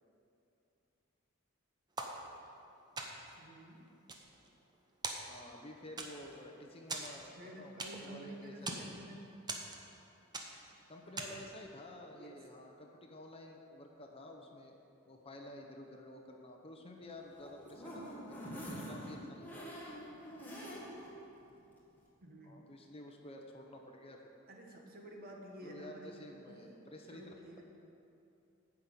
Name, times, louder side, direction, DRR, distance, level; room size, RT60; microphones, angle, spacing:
sound 1, 2.0-2.6 3.0-3.4 3.9-4.8 5.0-5.6 6.0-6.4 6.9-8.2 8.5-8.9 9.5-10.0 10.3-10.7 11.2-11.5, right 2 dB, 20° right, 0.8 m, -42 dB
voice 1, 3.4-3.8 7.4-9.4 11.0-11.4 12.2-12.4 22.2-22.6 24.5-26.2 26.5-26.8 27.1-27.6, right 1 dB, 45° right, 0 dB, 1.3 m, -51 dB
voice 2, 5.3-8.9 10.9-14.8 15.1-19.7 22.4-24.3 25.6-27.3, left 1 dB, 25° left, 2 dB, 0.8 m, -51 dB
sound 2, 17.2-21.1 21.6-21.7 22.0-22.1, equal, 10° left, 1.6 m, -46 dB
8.9 x 5.9 x 8.3 m, 2.7 s
head